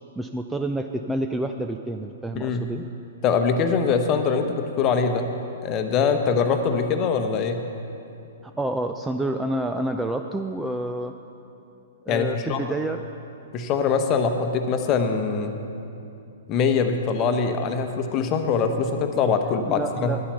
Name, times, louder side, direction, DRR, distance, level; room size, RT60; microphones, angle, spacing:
voice 1, 0.2-2.8 8.4-11.1 12.1-13.0 19.7-20.2, right 1 dB, 5° right, 6 dB, 0.4 m, -28 dB
voice 2, 3.2-4.5 4.8-5.3 5.6-7.6 12.1-12.6 13.5-15.5 16.5-20.1, left 5 dB, 30° left, 6 dB, 0.9 m, -23 dB
11.0 x 10.0 x 5.7 m, 2.7 s
figure-of-eight pair, 110°, 0 cm